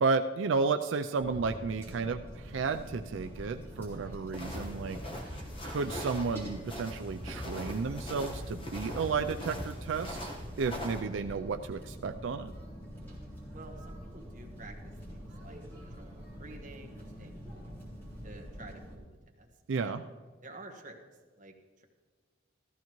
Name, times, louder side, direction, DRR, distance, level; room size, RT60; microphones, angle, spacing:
voice 1, 0.0-5.3 5.6-10.3 10.6-12.5 19.7-20.0, right 4 dB, 85° right, 7 dB, 0.4 m, -32 dB
sound 1, 1.2-18.9, equal, 10° left, 3.5 m, -45 dB
sound 2, 4.3-11.0, equal, 30° left, 1.3 m, -41 dB
voice 2, 13.5-17.8 18.2-19.1 19.4-19.5 19.8-20.0 20.4-21.0 21.3-21.8, right 2 dB, 40° right, 1 dB, 1.3 m, -51 dB
14.5 x 14.0 x 3.1 m, 1.4 s
head